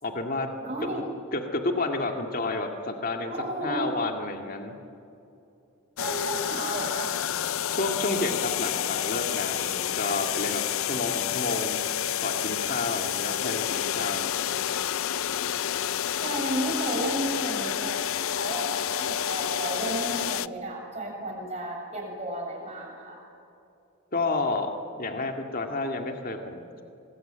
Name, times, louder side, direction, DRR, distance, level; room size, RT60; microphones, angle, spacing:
voice 1, 0.0-0.5 1.3-3.3 3.6-4.8 7.7-11.8 12.2-14.4 24.1-26.8, left 2 dB, 40° left, 4 dB, 2.1 m, -30 dB
voice 2, 0.6-1.1 3.3-3.9 6.0-7.1 16.2-23.2, right 1 dB, 30° right, 0 dB, 7.7 m, -33 dB
sound 1, 6.0-20.5, left 10 dB, 65° left, 0.5 m, -29 dB
27.0 x 21.0 x 9.0 m, 2.8 s
head